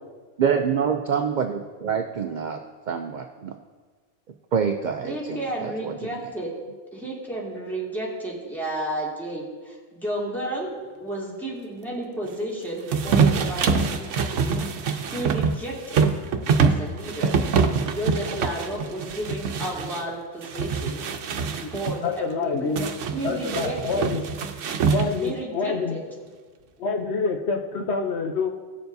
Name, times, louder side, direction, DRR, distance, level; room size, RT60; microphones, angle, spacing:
voice 1, 0.4-2.6 2.9-3.6 4.5-5.9, right 7 dB, 55° right, 6 dB, 0.5 m, -26 dB
voice 2, 5.0-6.5 6.9-10.7 11.0-16.0 16.5-21.0 21.5-22.7 23.1-24.0 25.2-26.0, right 1 dB, ahead, -6 dB, 2.0 m, -32 dB
sound 1, 12.9-20.0 20.4-22.0 22.8-25.4, right 5 dB, 80° right, 1.0 m, -24 dB
voice 3, 22.0-22.9 23.2-24.2 24.9-26.0 26.8-28.5, left 4 dB, 65° left, 4 dB, 0.9 m, -27 dB
17.5 x 7.0 x 2.6 m, 1.5 s
omnidirectional pair, 1.2 m